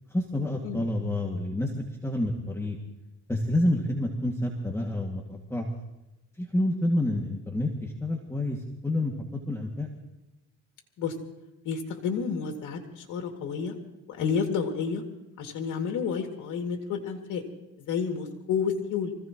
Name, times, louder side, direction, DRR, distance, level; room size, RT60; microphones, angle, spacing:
voice 1, 0.1-2.8 3.3-5.7 6.4-9.1 9.5-9.9, left 1 dB, 10° left, 0 dB, 2.3 m, -28 dB
voice 2, 11.7-13.7 14.1-15.0 15.4-17.4 17.9-19.1, left 6 dB, 85° left, 3 dB, 2.5 m, -30 dB
25.5 x 16.5 x 3.1 m, 0.96 s
cardioid pair, 90°, 30 cm